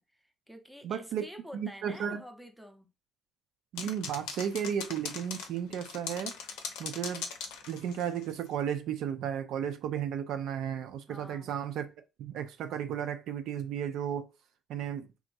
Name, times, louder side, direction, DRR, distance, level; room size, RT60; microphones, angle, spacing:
voice 1, 0.0-2.9 11.1-11.6, equal, ahead, 0.6 m, -48 dB
voice 2, 0.8-1.2 1.5-2.2 3.7-6.3 6.8-7.3 7.7-11.9 12.2-14.3 14.7-15.1, right 9 dB, 75° right, 0.3 m, -34 dB
sound 1, 3.8-8.3, left 6 dB, 85° left, 0.5 m, -40 dB
2.9 x 2.4 x 2.5 m
supercardioid pair, 70°, 0 cm